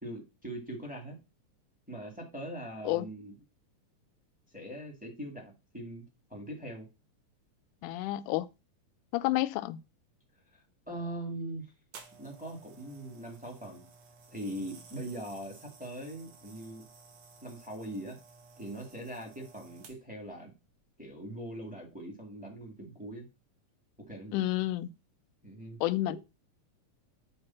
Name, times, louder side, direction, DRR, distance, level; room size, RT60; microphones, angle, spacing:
voice 1, 0.0-1.2 1.9-3.3 4.5-6.0 6.3-6.9 10.5-11.7 12.2-13.8 14.3-16.8 17.4-18.2 18.6-20.5 21.0-23.3 24.1-24.4 25.4-25.8 26.1-26.2, right 1 dB, 5° right, 1.1 m, -41 dB
voice 2, 7.8-8.5 9.1-9.8 24.3-24.9 25.8-26.2, left 16 dB, 85° left, 2.0 m, -30 dB
sound 1, 11.9-20.3 21.0-21.2, right 4 dB, 60° right, 2.2 m, -55 dB
7.9 x 3.3 x 5.7 m
omnidirectional pair, 3.5 m